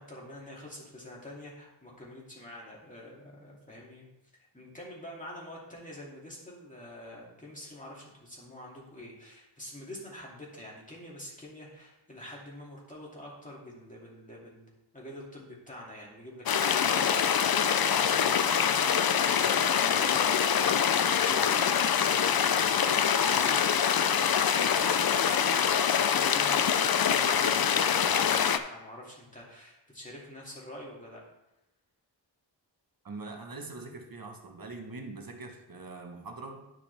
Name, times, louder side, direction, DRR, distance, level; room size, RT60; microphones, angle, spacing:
voice 1, 0.0-4.1 4.5-14.7 14.9-17.4 17.8-25.6 25.8-31.2, left 1 dB, 15° left, -4 dB, 2.5 m, -46 dB
sound 1, 16.5-28.6, left 8 dB, 55° left, 0.5 m, -25 dB
voice 2, 33.0-36.7, right 3 dB, 50° right, 3 dB, 1.2 m, -43 dB
10.5 x 5.8 x 3.4 m, 0.93 s
wide cardioid pair, 90°, 45 cm